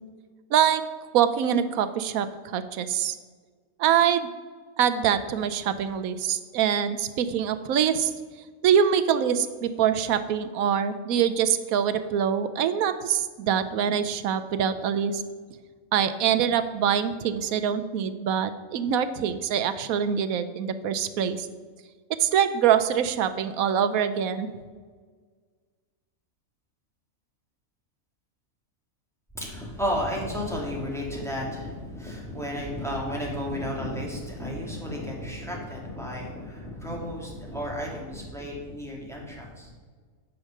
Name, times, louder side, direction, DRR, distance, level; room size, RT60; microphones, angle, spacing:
voice 1, 0.5-0.8 1.1-3.2 3.8-4.3 4.8-8.1 8.6-15.2 15.9-21.5 22.2-24.5, right 8 dB, 80° right, 11 dB, 1.1 m, -24 dB
voice 2, 29.3-39.7, equal, ahead, -3 dB, 2.1 m, -33 dB
10.0 x 5.1 x 6.5 m, 1.5 s
omnidirectional pair, 1.5 m